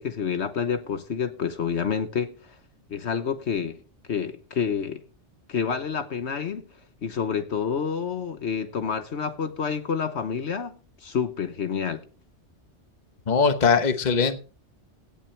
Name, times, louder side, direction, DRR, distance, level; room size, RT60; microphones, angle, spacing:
voice 1, 0.0-2.5 2.9-3.8 4.1-5.0 5.5-6.6 7.0-10.7 11.0-12.0, left 6 dB, 65° left, 1.3 m, -28 dB
voice 2, 13.3-14.4, left 5 dB, 40° left, 1.2 m, -21 dB
17.0 x 8.9 x 3.3 m
omnidirectional pair, 1.2 m